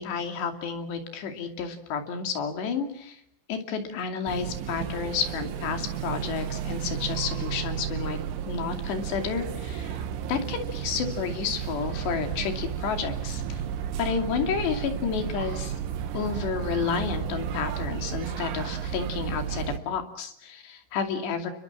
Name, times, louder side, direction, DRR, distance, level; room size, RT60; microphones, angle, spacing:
voice 1, 0.0-3.2 3.5-8.2 8.5-10.0 10.3-13.6 14.0-15.7 16.1-21.5, left 6 dB, 65° left, 5 dB, 4.6 m, -31 dB
sound 1, 4.3-19.8, right 9 dB, 80° right, 3.9 m, -33 dB
30.0 x 22.0 x 7.5 m, 0.69 s
omnidirectional pair, 5.6 m